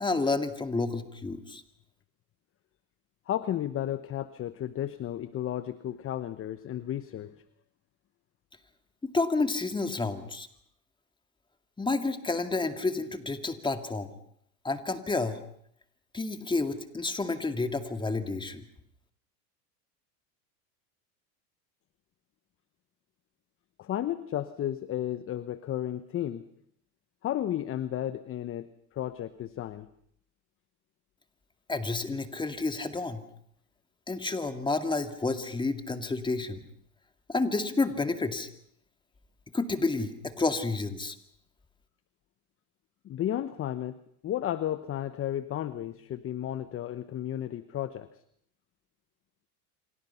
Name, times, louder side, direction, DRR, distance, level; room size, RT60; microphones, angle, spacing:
voice 1, 0.0-1.6 9.0-10.5 11.8-14.1 14.6-15.4 16.1-18.6 31.7-33.2 34.1-36.6 37.3-38.5 39.5-41.2, left 3 dB, 10° left, 8 dB, 2.2 m, -30 dB
voice 2, 3.3-7.3 23.8-26.5 27.2-28.7 28.9-29.9 43.0-44.0 44.2-48.1, left 11 dB, 30° left, 14 dB, 1.0 m, -33 dB
28.5 x 25.5 x 5.7 m, 0.68 s
supercardioid pair, 115°, 45 cm